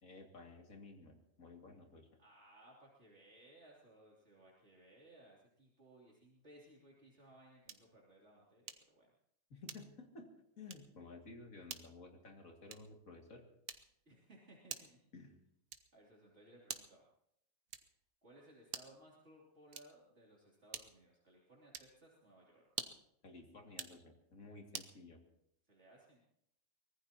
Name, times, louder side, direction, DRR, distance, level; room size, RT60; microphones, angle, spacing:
voice 1, 0.0-2.1 9.5-10.3 10.6-13.4 15.1-15.3 23.2-25.2, left 3 dB, 90° left, 2 dB, 2.9 m, -54 dB
voice 2, 2.2-9.1 14.0-15.0 15.9-17.0 18.2-22.7 25.7-26.2, right 1 dB, 55° right, -4 dB, 3.4 m, -62 dB
sound 1, 7.6-8.0 8.7-9.0 9.6-10.1 10.6-10.9 11.7-12.0 12.7-13.0 13.7-14.1 14.7-15.1 15.7-16.0 16.7-17.1 17.7-18.1 18.7-19.0 19.7-20.1 20.7-21.1 21.7-22.0 22.7-23.1 23.7-24.0 24.7-25.0, right 7 dB, 90° right, 1.4 m, -48 dB
24.0 x 19.5 x 3.0 m, 0.75 s
omnidirectional pair, 1.4 m